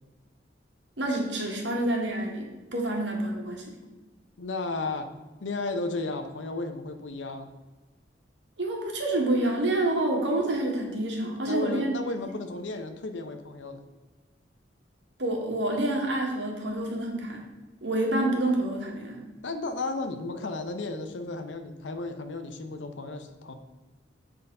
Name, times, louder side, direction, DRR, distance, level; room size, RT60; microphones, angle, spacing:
voice 1, 1.0-3.6 8.6-11.9 15.2-17.4 17.8-19.2, right 1 dB, 70° right, 0 dB, 1.7 m, -28 dB
voice 2, 4.4-5.1 5.4-7.5 11.4-13.8 19.4-23.5, left 3 dB, 90° left, 7 dB, 0.8 m, -34 dB
8.1 x 4.0 x 5.3 m, 1.2 s
head